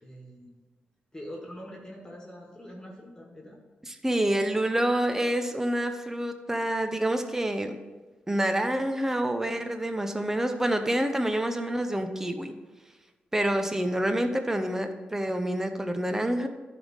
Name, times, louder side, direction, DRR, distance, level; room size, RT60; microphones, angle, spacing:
voice 1, 0.0-0.5 1.1-3.6, equal, 20° left, -2 dB, 1.8 m, -43 dB
voice 2, 4.0-7.7 8.3-12.5 13.3-16.5, right 1 dB, 10° right, 7 dB, 0.8 m, -27 dB
10.5 x 3.6 x 6.4 m, 1.2 s
cardioid pair, 65°, 4 cm